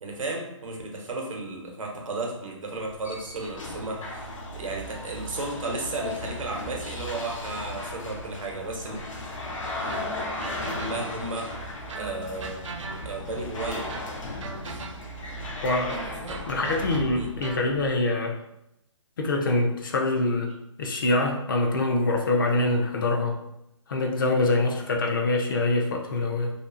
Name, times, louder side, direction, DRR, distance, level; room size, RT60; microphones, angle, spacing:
voice 1, 0.0-9.0 10.3-11.5 12.0-12.6 13.0-13.9 14.7-14.8 16.0-16.4 17.1-17.3, right 2 dB, 90° right, 0 dB, 0.8 m, -34 dB
sound 1, 2.7-17.9, left 2 dB, 80° left, 0.7 m, -36 dB
sound 2, 9.9-11.3 11.9-13.4 13.9-15.3 15.9-17.7, right 4 dB, 70° right, 0.4 m, -40 dB
voice 2, 15.6-16.0 16.5-18.4 19.2-20.5 20.8-23.4 23.9-26.5, left 2 dB, 40° left, 1 dB, 0.4 m, -24 dB
2.6 x 2.3 x 2.4 m, 0.83 s
hypercardioid pair, 160°, 16 cm